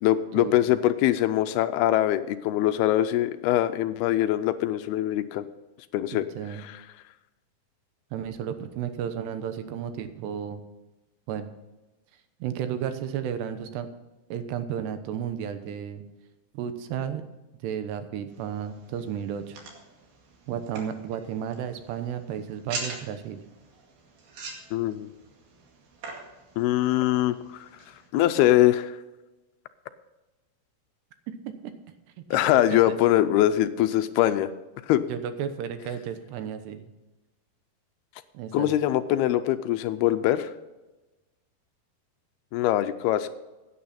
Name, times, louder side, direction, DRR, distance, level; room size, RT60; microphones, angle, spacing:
voice 1, 0.0-5.5 5.9-6.3 6.6-6.8 24.7-25.1 26.6-27.7 28.1-28.9 32.3-34.5 34.9-35.0 38.5-40.5 42.5-43.3, left 13 dB, 80° left, 10 dB, 2.5 m, -23 dB
voice 2, 6.1-6.6 8.1-10.6 11.3-11.5 12.4-13.9 14.3-16.0 16.5-17.2 17.6-19.6 20.5-23.4 31.6-31.7 32.2-33.0 35.1-36.9 38.3-38.7, right 8 dB, 90° right, 9 dB, 3.2 m, -33 dB
sound 1, 18.3-28.1, right 3 dB, 65° right, 4.0 m, -43 dB
16.5 x 9.5 x 4.3 m, 1.1 s
omnidirectional pair, 4.7 m